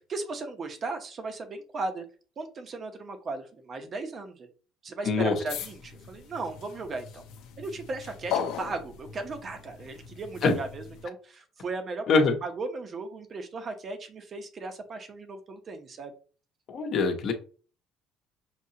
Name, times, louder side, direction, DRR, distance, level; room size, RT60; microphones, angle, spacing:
voice 1, 0.1-2.0 2.4-4.5 4.8-7.2 7.6-16.1, right 3 dB, 25° right, 6 dB, 0.7 m, -36 dB
sound 1, 5.5-11.1, left 8 dB, 70° left, 0.7 m, -38 dB
voice 2, 16.7-17.3, left 4 dB, 40° left, 3 dB, 1.0 m, -23 dB
6.4 x 2.9 x 2.8 m, 0.38 s
cardioid pair, 180°, 0 cm